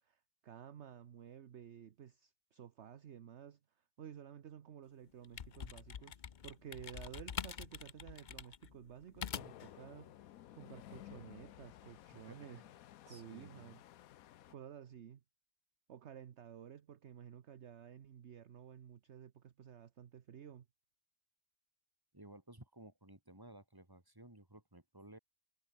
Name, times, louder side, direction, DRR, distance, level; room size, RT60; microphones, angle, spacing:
voice 1, 0.0-3.6 4.0-12.6 13.0-13.8 14.5-15.2 15.9-20.7, right 9 dB, 55° right, 1.1 m, -53 dB
sound 1, 5.1-9.7, left 7 dB, 45° left, 0.7 m, -45 dB
sound 2, 9.3-14.5, left 12 dB, 85° left, 1.2 m, -56 dB
voice 2, 12.3-12.7 13.1-13.7 22.1-25.2, right 1 dB, 15° right, 3.1 m, -56 dB
omnidirectional pair, 1.5 m